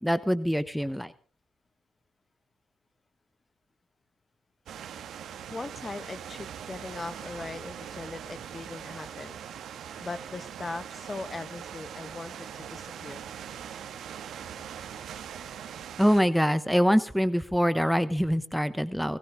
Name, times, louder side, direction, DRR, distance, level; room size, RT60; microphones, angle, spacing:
voice 1, 0.0-1.1 16.0-19.2, equal, ahead, 13 dB, 1.1 m, -24 dB
sound 1, 4.7-16.2, right 9 dB, 70° right, 1.8 m, -41 dB
voice 2, 5.5-9.4 10.0-13.3, left 3 dB, 35° left, 12 dB, 1.5 m, -39 dB
22.5 x 16.5 x 3.6 m, 0.42 s
supercardioid pair, 50°, 0 cm